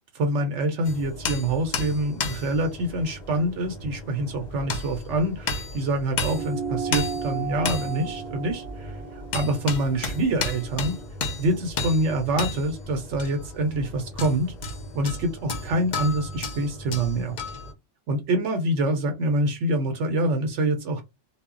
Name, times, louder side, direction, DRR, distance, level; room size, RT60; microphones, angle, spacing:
voice 1, 0.1-10.9 11.4-14.5 14.9-17.4 18.1-21.0, right 1 dB, 80° right, 6 dB, 0.9 m, -26 dB
sound 1, 0.8-17.7, left 3 dB, 55° left, 0.5 m, -33 dB
sound 2, 6.3-11.1, right 6 dB, 55° right, 0.7 m, -35 dB
2.1 x 2.0 x 3.6 m, 0.22 s
omnidirectional pair, 1.2 m